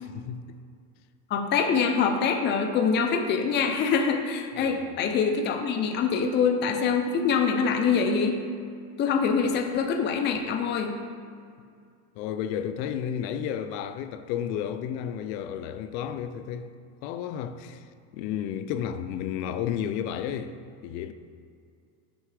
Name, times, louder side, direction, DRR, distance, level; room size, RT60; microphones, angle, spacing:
voice 1, 0.1-0.4 4.6-4.8 12.2-16.7 17.0-17.9 18.1-20.5 20.8-21.1, left 9 dB, 80° left, 0.7 m, -32 dB
voice 2, 1.3-8.4 9.0-10.9, left 5 dB, 25° left, 0.5 m, -24 dB
6.4 x 5.7 x 4.8 m
cardioid pair, 140°, 49 cm